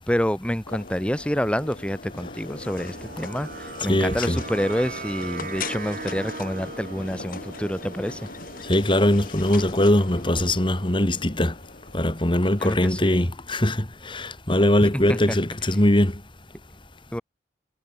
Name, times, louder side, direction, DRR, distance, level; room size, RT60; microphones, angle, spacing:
voice 1, 0.1-8.2 12.6-13.3 14.8-15.0 17.1-17.2, equal, 5° left, 2.9 m, -28 dB
sound 1, 0.7-13.3, left 4 dB, 50° left, 2.5 m, -40 dB
sound 2, 2.8-9.6, right 3 dB, 50° right, 3.4 m, -39 dB
voice 2, 3.9-4.4 8.6-11.5 11.9-16.1, left 1 dB, 30° left, 2.4 m, -21 dB
head